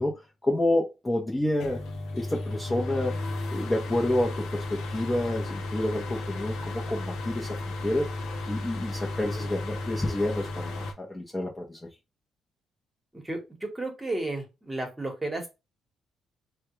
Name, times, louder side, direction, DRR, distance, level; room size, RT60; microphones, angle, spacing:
voice 1, 0.0-1.8 2.1-3.2 3.5-7.6 7.8-8.1 8.5-11.8, left 1 dB, 15° left, 0.8 m, -29 dB
sound 1, 1.6-10.9, left 2 dB, 85° left, 0.7 m, -34 dB
voice 2, 13.1-15.5, right 2 dB, 15° right, 1.2 m, -33 dB
3.4 x 2.2 x 3.0 m
cardioid pair, 90°, 0 cm